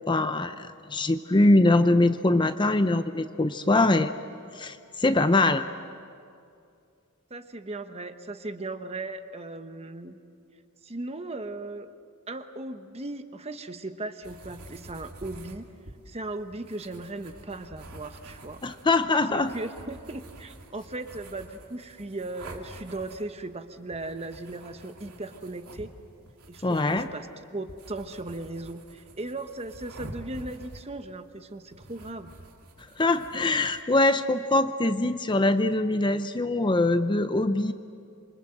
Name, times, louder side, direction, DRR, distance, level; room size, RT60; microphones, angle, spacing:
voice 1, 0.1-4.1 4.5-5.6 18.6-19.5 26.6-27.1 33.0-37.7, left 2 dB, 20° left, 10 dB, 0.6 m, -23 dB
voice 2, 7.3-10.2 10.8-11.9 12.3-15.7 16.1-18.6 19.3-25.9 26.5-27.3 27.5-32.3, right 2 dB, 30° right, 8 dB, 1.1 m, -37 dB
sound 1, 14.2-33.8, right 1 dB, 85° right, 2.7 m, -48 dB
27.5 x 24.5 x 7.9 m, 2.4 s
head